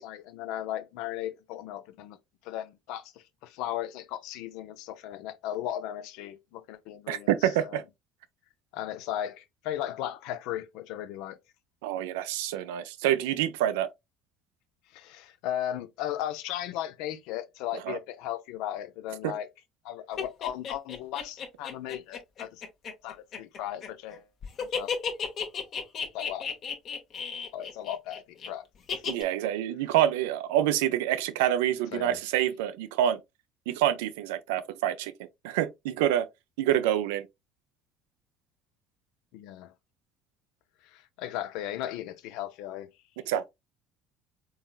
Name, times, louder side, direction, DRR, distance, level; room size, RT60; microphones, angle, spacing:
voice 1, 0.0-2.2 2.4-7.8 8.7-11.4 14.9-19.5 19.8-22.6 23.0-24.3 24.6-24.9 26.1-26.4 27.5-28.7 28.9-29.0 31.9-32.2 39.3-39.7 40.8-42.9, left 12 dB, 65° left, 0.5 m, -36 dB
voice 2, 7.1-7.8 11.8-13.9 17.9-18.0 19.2-19.3 29.1-33.2 33.7-35.1 35.4-36.3 36.6-37.3 43.3-43.5, right 11 dB, 75° right, 0.4 m, -27 dB
sound 1, 20.2-24.2 24.4-28.5 28.9-29.2, left 6 dB, 50° left, 1.0 m, -33 dB
3.9 x 3.9 x 2.3 m
hypercardioid pair, 65°, 0 cm